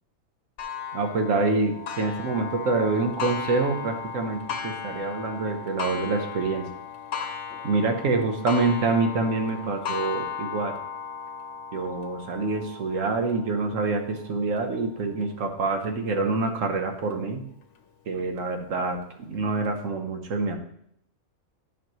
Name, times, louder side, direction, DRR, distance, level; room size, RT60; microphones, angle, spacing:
Clock, 0.6-15.9 16.5-16.6 17.1-17.2 18.2-18.3, left 6 dB, 70° left, 1.0 m, -36 dB
voice 1, 0.9-6.7 7.6-10.7 11.7-17.4 18.1-20.6, right 3 dB, 80° right, 5 dB, 1.3 m, -26 dB
10.5 x 5.7 x 3.1 m, 0.70 s
omnidirectional pair, 1.3 m